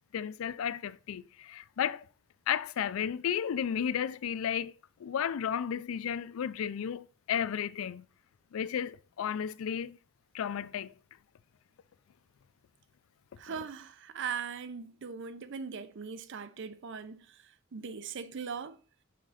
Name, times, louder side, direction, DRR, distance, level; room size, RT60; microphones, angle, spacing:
voice 1, 0.1-2.0 2.5-4.7 5.0-8.0 8.5-10.0 10.3-10.9, left 8 dB, 70° left, 0.3 m, -33 dB
voice 2, 13.4-18.8, right 6 dB, 60° right, 0.5 m, -40 dB
5.8 x 3.6 x 5.0 m
head